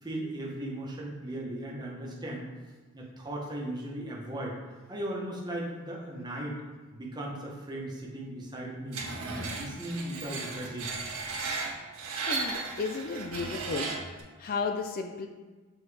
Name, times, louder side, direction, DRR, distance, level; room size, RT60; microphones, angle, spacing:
voice 1, 0.0-2.5 2.9-4.5 4.9-6.6 6.9-9.0 9.5-11.0, right 1 dB, 20° right, -2 dB, 1.0 m, -37 dB
Screech, 8.9-14.2, right 3 dB, 80° right, 1.4 m, -35 dB
voice 2, 12.2-14.0 14.4-15.3, left 4 dB, 40° left, 5 dB, 0.4 m, -33 dB
6.9 x 4.1 x 3.3 m, 1.3 s
head